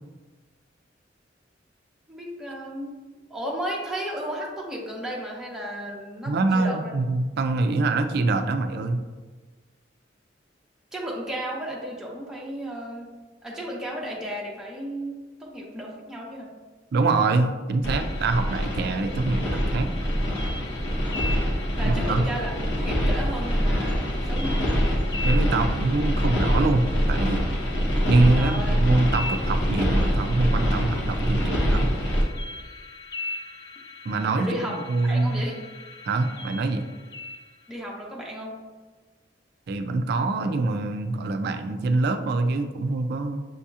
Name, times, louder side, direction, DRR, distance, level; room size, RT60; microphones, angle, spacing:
voice 1, 2.1-3.0 3.3-6.9 10.9-13.1 13.4-16.5 21.8-22.5 22.8-24.6 28.3-28.7 34.4-34.8 35.0-35.6 37.7-38.6, equal, 5° right, -4 dB, 0.7 m, -34 dB
voice 2, 6.3-9.0 16.9-19.9 21.8-22.3 25.2-27.5 28.1-31.9 34.1-34.6 34.9-35.4 36.0-36.9 39.7-43.5, right 3 dB, 55° right, 8 dB, 0.4 m, -24 dB
sound 1, 17.8-32.2, equal, 75° left, 0.9 m, -25 dB
sound 2, 17.9-37.8, left 3 dB, 20° left, 0.3 m, -40 dB
6.9 x 2.8 x 2.4 m, 1.3 s
head